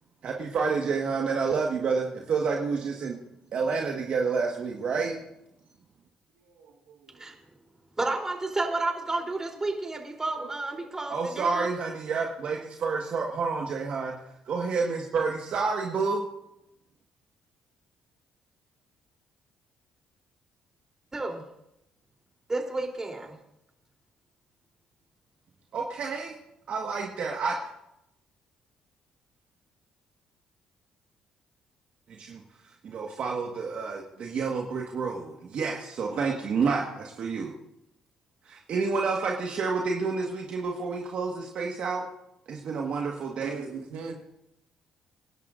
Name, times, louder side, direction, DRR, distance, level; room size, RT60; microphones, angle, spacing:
voice 1, 0.2-3.2 3.5-5.1 11.1-14.2 14.4-16.2 25.7-26.4 26.7-27.7 32.1-37.5 38.4-42.0 42.5-43.5, right 4 dB, 60° right, 0 dB, 1.6 m, -29 dB
voice 2, 6.4-7.3 10.4-10.9 43.4-44.1, right 5 dB, 80° right, 1 dB, 1.9 m, -41 dB
voice 3, 8.0-11.7 21.1-21.4 22.5-23.4, right 2 dB, 25° right, 1 dB, 3.5 m, -31 dB
27.0 x 11.0 x 2.6 m, 0.84 s
supercardioid pair, 60°, 2 cm